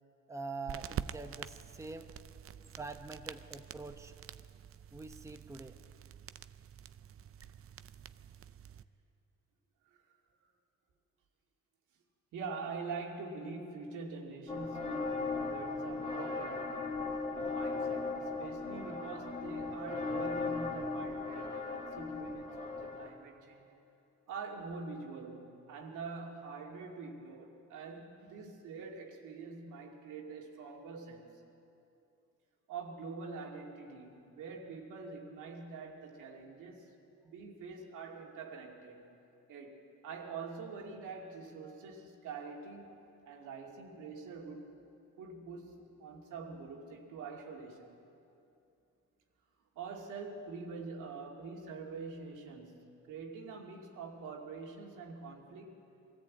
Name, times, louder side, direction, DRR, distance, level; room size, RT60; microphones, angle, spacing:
voice 1, 0.3-2.1 2.8-4.1 4.9-5.8, right 3 dB, 10° right, 6 dB, 1.0 m, -44 dB
sound 1, 0.7-8.8, right 9 dB, 50° right, 0.6 m, -47 dB
voice 2, 12.3-17.0 17.5-23.7 24.3-31.4 32.7-36.9 37.2-39.2 39.5-43.0 43.3-44.7 45.2-47.9 49.8-55.8, right 4 dB, 85° right, 0 dB, 2.5 m, -45 dB
sound 2, 14.5-23.1, left 4 dB, 20° left, 2.5 m, -37 dB
22.5 x 14.0 x 8.5 m, 2.7 s
cardioid pair, 90°, 30 cm